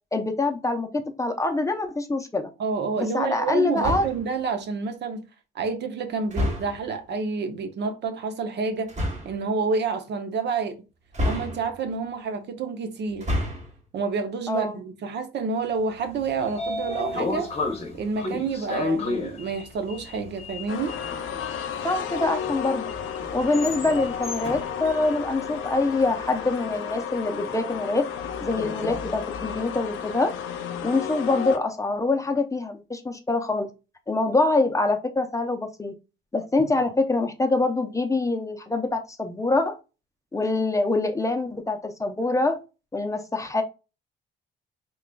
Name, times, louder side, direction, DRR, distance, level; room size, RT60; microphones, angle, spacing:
voice 1, 0.1-2.5 3.0-4.1 14.5-14.8 21.8-22.9 23.3-28.0 28.4-30.3 30.8-33.7 34.1-35.9 36.3-39.8 40.3-42.6 42.9-43.6, left 2 dB, 15° left, 0.5 m, -25 dB
voice 2, 2.6-5.2 5.5-8.9 9.2-10.8 11.3-13.3 13.9-17.5 17.9-21.0, right 5 dB, 60° right, 0.7 m, -29 dB
sound 1, 3.8-4.3 6.3-6.9 8.9-9.4 11.1-11.9 13.1-13.8, left 1 dB, 35° right, 1.1 m, -28 dB
Sliding door, 16.0-26.1, left 3 dB, 30° left, 0.9 m, -33 dB
sound 2, 20.7-31.6, left 8 dB, 80° left, 0.5 m, -33 dB
3.7 x 3.0 x 2.2 m
cardioid pair, 90°, 20 cm